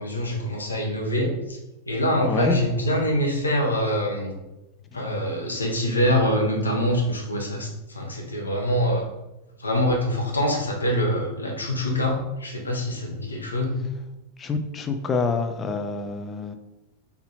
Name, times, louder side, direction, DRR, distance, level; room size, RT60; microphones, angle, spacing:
voice 1, 0.0-1.6 1.9-4.4 4.9-9.0 9.6-13.8, equal, 75° left, 1 dB, 0.9 m, -25 dB
voice 2, 2.2-2.6 14.4-16.5, left 4 dB, 20° left, 6 dB, 0.5 m, -26 dB
4.0 x 2.8 x 4.1 m, 0.98 s
figure-of-eight pair, 90°, 0 cm